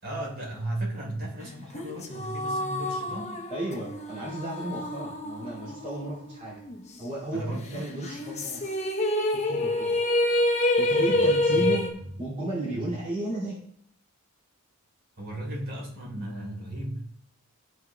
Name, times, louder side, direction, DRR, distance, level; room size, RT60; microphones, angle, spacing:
voice 1, 0.0-3.4 7.3-7.9 11.1-12.1 12.7-12.9 15.2-17.1, right 1 dB, 55° right, -2 dB, 3.8 m, -35 dB
sound 1, 1.7-6.4 6.7-6.8 8.0-11.9, left 1 dB, 30° left, 1.0 m, -27 dB
voice 2, 3.5-6.6 7.0-8.8 9.3-10.0 10.8-11.9 12.2-13.5, right 1 dB, 30° right, -8 dB, 2.5 m, -34 dB
13.0 x 6.2 x 2.3 m, 0.67 s
head